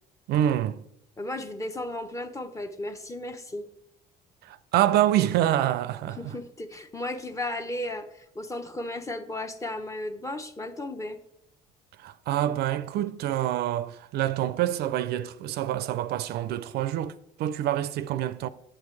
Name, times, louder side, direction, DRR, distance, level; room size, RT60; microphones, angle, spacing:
voice 1, 0.3-0.8 4.4-6.4 12.0-17.1 17.4-18.5, right 12 dB, 70° right, 0.4 m, -26 dB
voice 2, 1.2-3.7 6.1-11.2, left 1 dB, 20° left, 0.7 m, -35 dB
8.6 x 7.4 x 3.1 m
cardioid pair, 110°, 17 cm